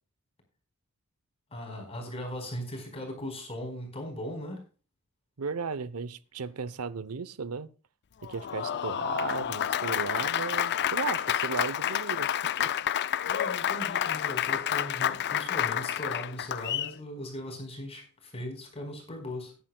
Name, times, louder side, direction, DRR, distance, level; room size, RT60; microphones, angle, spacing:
voice 1, 1.5-4.6 13.2-19.5, left 1 dB, 30° left, 4.4 m, -38 dB
voice 2, 5.4-7.7 8.2-12.7, right 5 dB, 85° right, 0.8 m, -35 dB
Applause, 8.2-16.9, left 10 dB, 50° left, 0.4 m, -29 dB
17.0 x 10.5 x 2.3 m
head